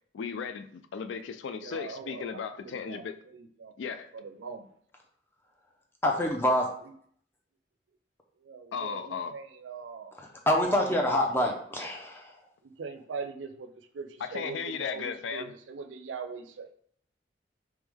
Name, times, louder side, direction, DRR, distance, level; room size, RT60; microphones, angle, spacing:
voice 1, 0.1-3.2 3.8-4.1 8.7-9.3 14.2-15.5, left 6 dB, 80° left, 0.3 m, -36 dB
voice 2, 1.6-4.7 8.4-10.2 10.7-10.9 11.4-11.5 12.6-16.7, right 5 dB, 90° right, 0.4 m, -42 dB
voice 3, 6.0-6.7 10.2-12.3, left 1 dB, 10° left, 0.6 m, -26 dB
3.5 x 3.1 x 3.5 m
head